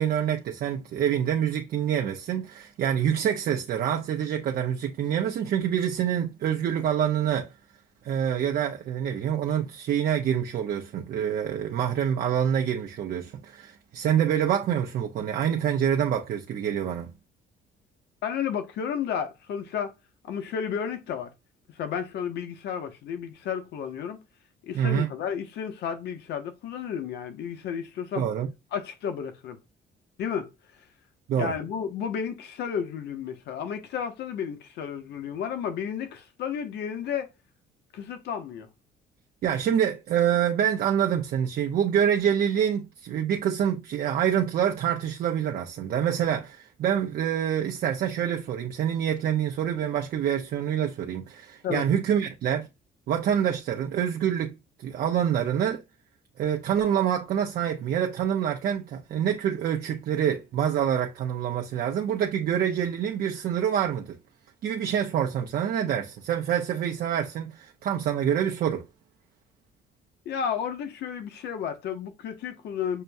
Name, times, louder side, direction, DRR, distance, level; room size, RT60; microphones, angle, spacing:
voice 1, 0.0-7.5 8.0-17.1 24.7-25.1 28.2-28.5 31.3-31.5 39.4-52.7 53.1-54.5 54.8-55.8 56.4-64.2 64.6-68.8, right 9 dB, 60° right, 0.7 m, -26 dB
voice 2, 18.2-19.9 20.3-21.3 21.7-24.2 24.6-28.3 28.7-29.6 30.2-30.5 31.4-37.3 37.9-38.7 51.6-51.9 70.2-73.0, left 7 dB, 70° left, 0.9 m, -32 dB
6.6 x 2.2 x 2.5 m
cardioid pair, 110°, 18 cm